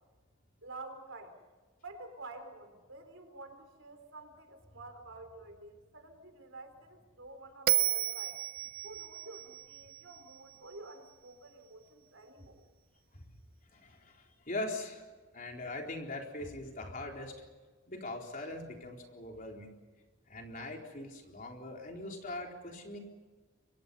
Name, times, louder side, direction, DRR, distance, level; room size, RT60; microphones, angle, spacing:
voice 1, 0.6-1.4 1.8-8.4 8.8-12.6, right 2 dB, 70° right, 7 dB, 4.0 m, -49 dB
Bell, 7.7-10.9, right 13 dB, 45° right, 0.7 m, -33 dB
voice 2, 13.7-15.1 15.3-17.4 17.9-19.7 20.3-23.0, left 2 dB, 40° left, 1 dB, 3.9 m, -41 dB
28.5 x 24.5 x 5.4 m, 1.3 s
head